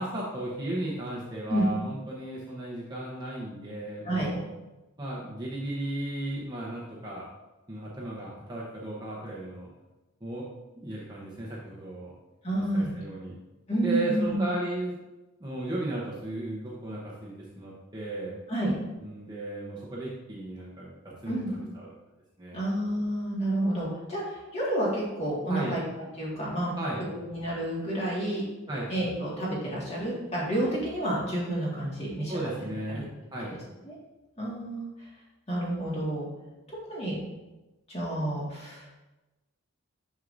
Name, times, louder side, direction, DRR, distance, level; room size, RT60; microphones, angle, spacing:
voice 1, 0.0-4.4 5.0-7.3 7.7-9.7 10.2-10.5 10.8-12.1 12.7-13.4 13.8-14.9 15.4-18.4 19.0-21.9 22.4-22.6 25.5-25.7 26.8-27.0 28.7-28.9 32.3-33.5, right 1 dB, 20° right, -5 dB, 0.8 m, -35 dB
voice 2, 12.4-12.9 13.7-14.5 18.5-18.7 21.3-21.6 22.5-26.7 27.2-28.4 28.9-32.3 33.0-33.1 33.8-33.9 34.4-35.1 35.5-36.3 36.9-37.2 37.9-39.0, right 1 dB, 30° left, -6 dB, 1.8 m, -30 dB
6.4 x 6.2 x 2.6 m, 1.1 s
head